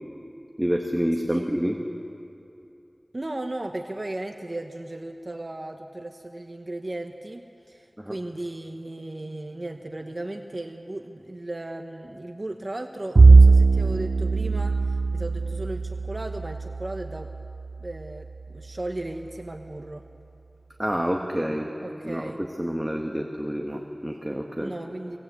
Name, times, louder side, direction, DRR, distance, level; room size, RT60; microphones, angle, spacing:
voice 1, 0.6-1.8 8.0-8.2 20.8-21.7 22.0-24.7, equal, 10° right, 1 dB, 1.7 m, -28 dB
voice 2, 3.1-17.3 17.8-20.1 21.8-22.4 24.6-25.2, right 1 dB, 50° right, 4 dB, 1.1 m, -36 dB
Bowed string instrument, 13.1-17.7, right 3 dB, 90° right, 0.5 m, -18 dB
24.5 x 18.5 x 8.4 m, 2.7 s
wide cardioid pair, 55°, 0 cm